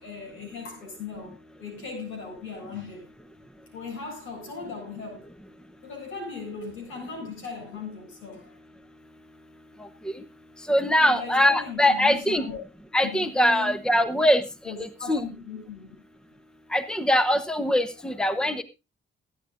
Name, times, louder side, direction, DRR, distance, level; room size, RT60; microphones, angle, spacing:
voice 1, 0.0-3.1 3.7-5.3 5.8-8.6 10.8-12.6 13.0-13.8 14.6-16.0, left 5 dB, 80° left, 7.5 m, -38 dB
voice 2, 10.7-12.4 12.9-14.4 15.1-15.2 16.7-18.6, equal, 5° left, 1.0 m, -22 dB
21.5 x 9.6 x 2.6 m
cardioid pair, 90°, 20 cm